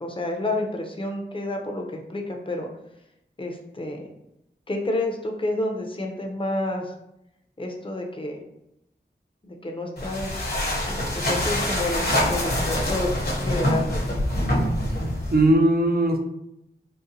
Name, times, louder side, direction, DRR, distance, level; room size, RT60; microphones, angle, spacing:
voice 1, 0.0-2.7 3.4-4.1 4.7-6.9 7.6-8.4 9.4-10.4 10.9-14.0, left 2 dB, 30° left, 1 dB, 0.5 m, -29 dB
sound 1, 10.0-15.5, left 1 dB, 55° left, 0.8 m, -25 dB
voice 2, 14.9-16.2, right 1 dB, 55° right, 1 dB, 0.5 m, -20 dB
4.0 x 2.1 x 2.6 m, 0.83 s
wide cardioid pair, 50°, 19 cm